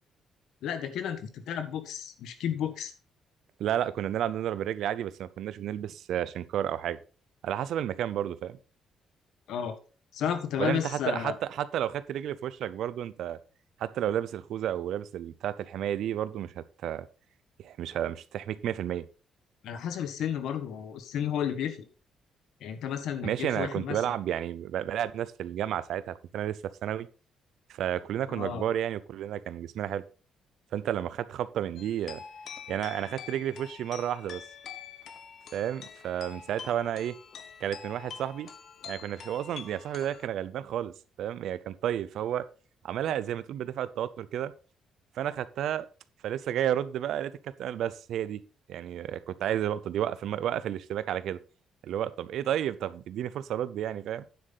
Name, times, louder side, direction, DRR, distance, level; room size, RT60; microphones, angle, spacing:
voice 1, 0.6-2.9 9.5-9.8 10.1-11.4 19.6-21.9 22.6-24.0 28.3-28.7, left 8 dB, 70° left, 10 dB, 1.4 m, -32 dB
voice 2, 3.6-7.0 7.4-8.6 10.6-13.4 13.8-17.1 17.6-19.1 23.2-27.1 27.7-30.0 30.7-32.2 32.7-34.4 35.5-37.1 37.6-38.5 38.9-42.4 42.8-44.5 45.2-45.9 46.2-48.4 48.7-51.4 51.8-54.2, right 10 dB, 65° right, 16 dB, 0.6 m, -31 dB
sound 1, 31.8-40.3, left 7 dB, 50° left, 0.9 m, -46 dB
9.5 x 7.5 x 4.0 m, 0.36 s
cardioid pair, 175°, 0 cm